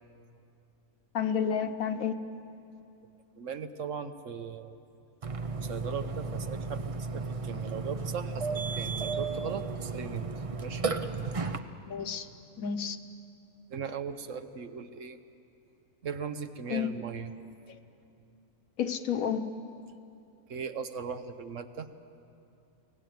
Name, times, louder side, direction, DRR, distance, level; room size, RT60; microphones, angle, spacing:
voice 1, 1.1-2.1 11.9-12.3 12.6-13.0 16.7-17.0 18.8-19.5, left 7 dB, 70° left, 9 dB, 1.3 m, -30 dB
voice 2, 3.4-4.8 5.6-6.8 7.1-10.3 10.6-11.4 13.7-15.2 16.0-17.3 20.5-21.9, right 6 dB, 65° right, 9 dB, 1.2 m, -38 dB
Burping eructation, 5.2-11.6, right 4 dB, 35° right, 0.5 m, -34 dB
23.5 x 17.5 x 9.3 m, 2.6 s
omnidirectional pair, 1.5 m